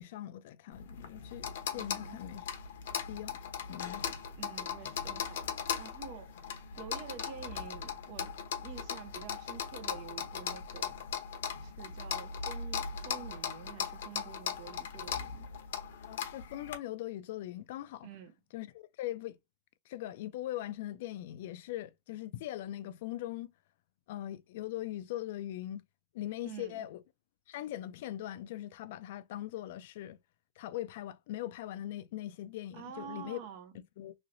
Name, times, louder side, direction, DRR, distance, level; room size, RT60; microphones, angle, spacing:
voice 1, 0.0-2.6 3.1-3.4 3.7-4.1 16.1-18.1 18.5-19.4 19.9-23.5 24.1-25.8 26.1-27.0 27.5-30.2 30.6-33.4 33.7-34.1, left 13 dB, 55° left, 0.4 m, -41 dB
sound 1, 0.7-16.7, left 7 dB, 75° left, 0.8 m, -39 dB
voice 2, 1.7-2.2 4.4-8.3 8.6-11.0 11.6-15.5 18.0-18.3 26.4-26.8 32.7-33.8, right 8 dB, 45° right, 0.6 m, -48 dB
3.1 x 2.9 x 2.6 m
supercardioid pair, 160°, 0 cm